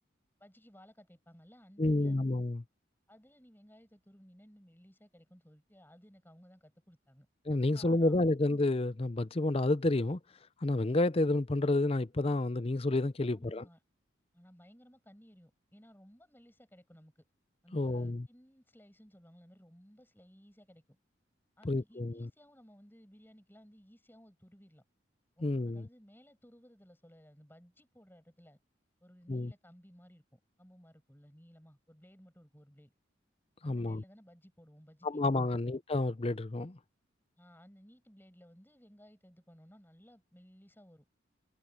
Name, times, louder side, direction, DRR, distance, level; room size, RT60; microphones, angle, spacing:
voice 1, 0.4-2.3 3.1-7.3 7.7-8.5 13.3-13.8 14.3-17.2 17.6-20.8 21.6-24.8 25.4-28.6 29.0-32.9 33.6-35.6 37.4-41.1, equal, 10° left, 6.4 m, -59 dB
voice 2, 1.8-2.6 7.5-10.2 10.6-13.6 17.7-18.3 21.6-22.3 25.4-25.8 29.3-29.5 33.6-34.0 35.0-36.8, left 2 dB, 30° left, 0.6 m, -30 dB
head